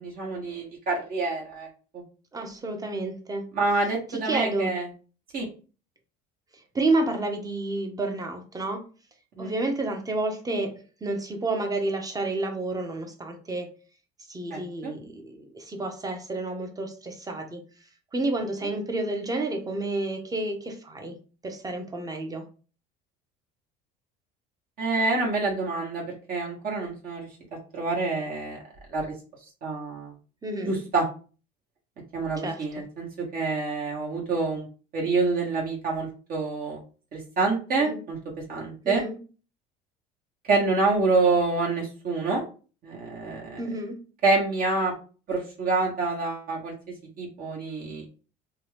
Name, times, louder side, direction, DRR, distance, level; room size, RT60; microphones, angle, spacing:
voice 1, 0.0-1.7 1.9-2.0 3.5-4.9 5.3-5.4 9.4-9.5 14.5-14.9 24.8-27.3 27.7-28.6 28.9-29.1 29.6-30.1 30.6-31.0 32.1-34.7 34.9-36.8 37.1-38.2 38.5-39.0 40.5-42.4 42.8-43.6 44.2-44.9 45.3-46.7 47.2-48.0, right 3 dB, 50° right, -2 dB, 1.2 m, -27 dB
voice 2, 2.3-3.5 4.1-4.7 6.7-8.9 9.4-13.7 14.3-17.6 18.1-21.1 21.4-22.4 30.4-30.8 32.4-32.6 37.8-38.0 38.8-39.2 43.6-44.0, right 2 dB, 20° right, 4 dB, 0.8 m, -30 dB
2.8 x 2.3 x 3.3 m, 0.37 s
supercardioid pair, 90°, 20 cm